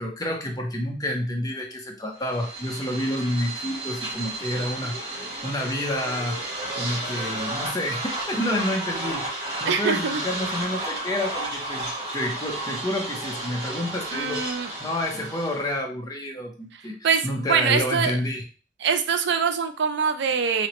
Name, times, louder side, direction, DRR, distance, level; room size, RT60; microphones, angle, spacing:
voice 1, 0.0-6.4 6.7-9.3 9.6-14.5 14.8-18.4, left 1 dB, 20° left, 1 dB, 0.8 m, -29 dB
sound 1, 2.2-15.8, right 1 dB, 30° right, 1.8 m, -32 dB
voice 2, 9.7-10.2 14.1-14.7 17.0-18.2 18.8-20.7, right 6 dB, 65° right, 8 dB, 0.5 m, -24 dB
3.9 x 3.1 x 3.1 m, 0.36 s
head